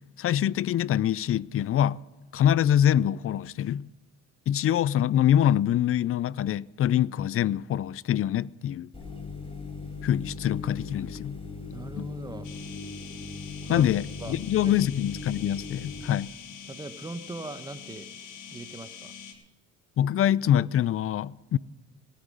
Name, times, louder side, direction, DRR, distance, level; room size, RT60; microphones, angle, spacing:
voice 1, 0.2-2.0 2.3-3.9 4.5-8.9 10.0-11.4 12.0-12.1 13.7-16.3 20.0-21.6, left 10 dB, 50° left, 0.4 m, -25 dB
sound 1, 8.9-16.0, left 4 dB, 20° left, 4.2 m, -39 dB
voice 2, 11.7-12.5 13.6-13.9 14.2-14.4 14.6-14.8 16.7-18.1 18.5-19.1, right 2 dB, 15° right, 1.0 m, -39 dB
sound 2, 12.4-19.3, left 7 dB, 90° left, 1.9 m, -45 dB
18.0 x 10.0 x 5.4 m
cardioid pair, 90°, 30 cm